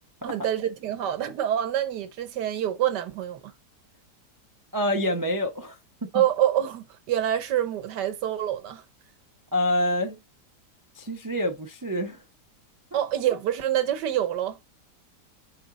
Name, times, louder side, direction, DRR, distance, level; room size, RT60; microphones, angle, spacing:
voice 1, 0.2-3.5 6.1-8.8 12.9-14.6, right 11 dB, 90° right, 1.5 m, -26 dB
voice 2, 4.7-6.1 9.5-10.2 10.9-12.2, left 1 dB, 30° right, 0.3 m, -27 dB
6.4 x 4.0 x 3.9 m
omnidirectional pair, 1.8 m